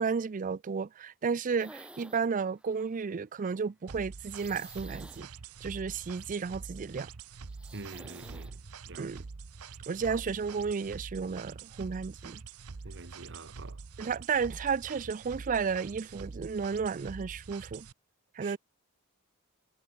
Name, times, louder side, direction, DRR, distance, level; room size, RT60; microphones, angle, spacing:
voice 1, 0.0-5.3 5.6-7.1 9.0-9.2 9.9-12.4 14.0-17.9 18.4-18.6, right 5 dB, 35° right, 0.4 m, -33 dB
sound 1, 1.6-2.3 2.6-3.0 4.2-6.1 7.4-8.6, right 1 dB, 5° right, 1.4 m, -51 dB
sound 2, 3.9-17.9, right 4 dB, 85° right, 0.8 m, -46 dB
voice 2, 7.7-8.6 8.8-9.1 12.8-13.8 18.4-18.6, right 3 dB, 55° right, 1.6 m, -46 dB
head